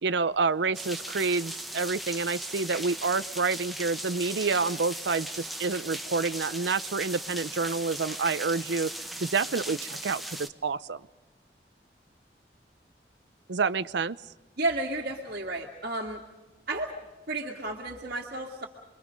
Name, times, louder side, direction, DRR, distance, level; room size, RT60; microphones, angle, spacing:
voice 1, 0.0-8.9 9.2-11.0 13.5-14.2, right 4 dB, 85° right, 15 dB, 0.7 m, -28 dB
sound 1, 0.7-10.5, right 1 dB, ahead, 1.1 m, -38 dB
voice 2, 14.6-16.2 16.7-16.9 17.3-18.7, right 2 dB, 60° right, -2 dB, 2.2 m, -32 dB
28.5 x 23.0 x 5.3 m, 1.2 s
head